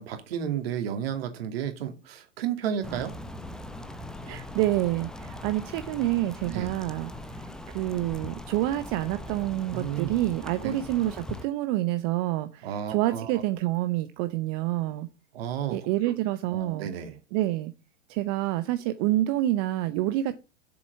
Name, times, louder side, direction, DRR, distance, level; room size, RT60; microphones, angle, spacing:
voice 1, 0.0-3.1 6.4-6.7 9.7-10.1 10.6-10.8 12.6-13.3 15.3-15.8 16.0-16.1 16.5-17.2, right 9 dB, 50° right, 2.7 m, -32 dB
sound 1, 2.8-11.5, left 1 dB, ahead, 0.7 m, -40 dB
voice 2, 4.2-7.1 7.7-15.1 15.7-16.9 17.3-17.7 18.1-20.4, right 15 dB, 35° right, 0.8 m, -27 dB
7.9 x 7.1 x 6.8 m
figure-of-eight pair, 105°, 38 cm